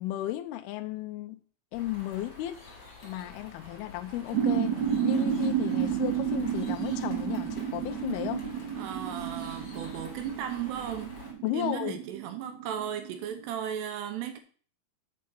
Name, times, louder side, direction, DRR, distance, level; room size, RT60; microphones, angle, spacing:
voice 1, 0.0-1.4 1.7-2.6 3.0-4.8 5.0-8.5 11.4-12.0, left 14 dB, 80° left, 2.4 m, -34 dB
sound 1, 1.7-11.3, left 3 dB, 35° left, 3.7 m, -48 dB
sound 2, 4.3-13.6, right 9 dB, 70° right, 1.8 m, -31 dB
voice 2, 8.8-11.2 11.5-14.4, right 10 dB, 85° right, 2.9 m, -35 dB
7.3 x 7.1 x 6.2 m
omnidirectional pair, 4.8 m